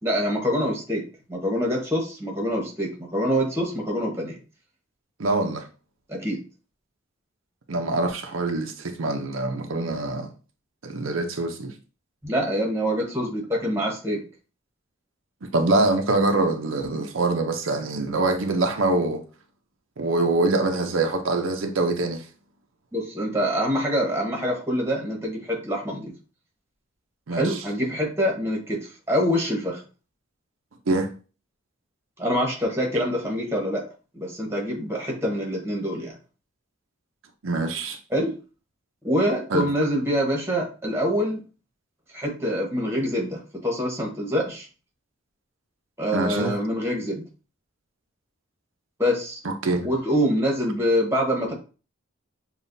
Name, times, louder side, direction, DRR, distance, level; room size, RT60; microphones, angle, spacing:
voice 1, 0.0-1.0 1.3-4.4 6.1-6.4 12.2-14.2 22.9-26.1 27.3-29.8 32.2-33.9 34.1-36.2 38.1-38.3 39.0-41.4 42.1-44.7 46.0-47.2 49.0-49.4 49.8-51.5, equal, 15° right, 1.2 m, -25 dB
voice 2, 5.2-5.6 7.7-10.3 10.8-11.7 15.4-19.2 20.0-22.2 27.3-27.6 30.9-31.1 37.4-38.0 39.5-39.7 46.1-46.5 49.4-49.9, right 2 dB, 85° right, 0.6 m, -24 dB
6.9 x 2.4 x 2.6 m
head